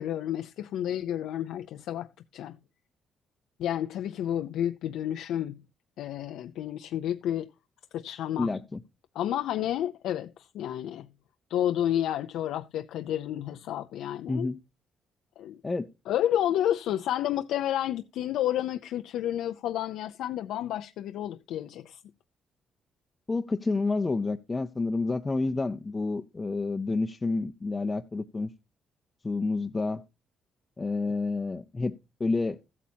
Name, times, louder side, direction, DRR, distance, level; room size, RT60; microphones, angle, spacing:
voice 1, 0.0-2.6 3.6-5.6 6.0-7.5 7.9-8.5 9.1-11.1 11.5-14.5 15.4-15.6 16.1-22.0, left 11 dB, 85° left, 0.5 m, -30 dB
voice 2, 8.4-8.8 14.3-14.6 15.6-15.9 23.3-28.5 29.2-30.0 30.8-32.6, left 3 dB, 25° left, 0.6 m, -29 dB
14.5 x 8.4 x 2.8 m
cardioid pair, 90°, 0 cm